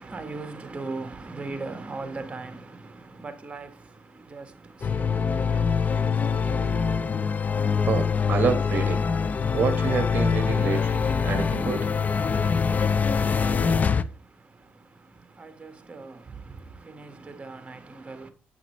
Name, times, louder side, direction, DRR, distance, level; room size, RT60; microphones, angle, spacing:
voice 1, 0.0-7.7 14.0-18.3, right 3 dB, 25° right, 1.5 m, -40 dB
sound 1, 4.8-14.0, left 6 dB, 40° left, 0.5 m, -24 dB
voice 2, 7.9-9.0 9.5-11.9, right 5 dB, 45° right, 1.3 m, -27 dB
8.3 x 5.8 x 3.1 m
supercardioid pair, 70°, 4 cm